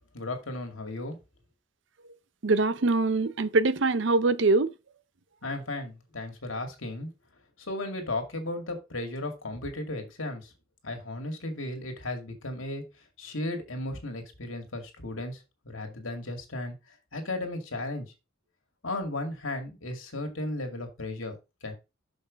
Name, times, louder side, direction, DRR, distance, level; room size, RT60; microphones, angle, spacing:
voice 1, 0.1-1.2 5.4-7.1 7.7-10.5 10.8-12.8 13.2-15.4 15.7-16.7 17.1-18.1 18.8-21.3 21.6-21.7, left 2 dB, 85° left, 2.2 m, -35 dB
voice 2, 2.4-4.7, right 3 dB, 65° right, 0.6 m, -23 dB
6.4 x 5.6 x 5.2 m
head